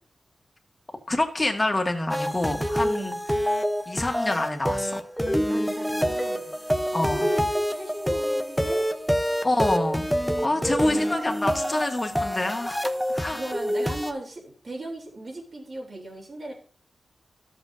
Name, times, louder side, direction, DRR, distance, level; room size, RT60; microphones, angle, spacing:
voice 1, 1.1-3.2 3.8-5.0 6.9-7.3 9.4-10.1 10.4-12.8 13.1-13.4, left 2 dB, 25° left, 3 dB, 1.7 m, -26 dB
sound 1, 2.1-14.1, equal, ahead, 0.8 m, -27 dB
voice 2, 2.8-3.2 5.4-6.6 6.9-8.9 10.5-11.2 13.2-16.5, right 1 dB, 50° right, -1 dB, 3.3 m, -37 dB
13.5 x 7.6 x 2.7 m, 0.42 s
wide cardioid pair, 75°, 0 cm